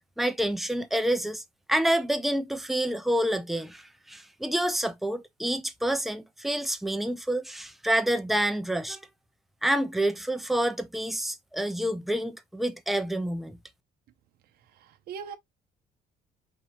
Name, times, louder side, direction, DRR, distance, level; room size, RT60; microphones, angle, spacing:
voice 1, 0.2-1.4 1.7-9.0 9.6-13.6, right 1 dB, ahead, 0.5 m, -28 dB
voice 2, 14.7-15.4, right 7 dB, 65° right, 0.7 m, -40 dB
4.5 x 2.7 x 3.0 m
cardioid pair, 110°, 17 cm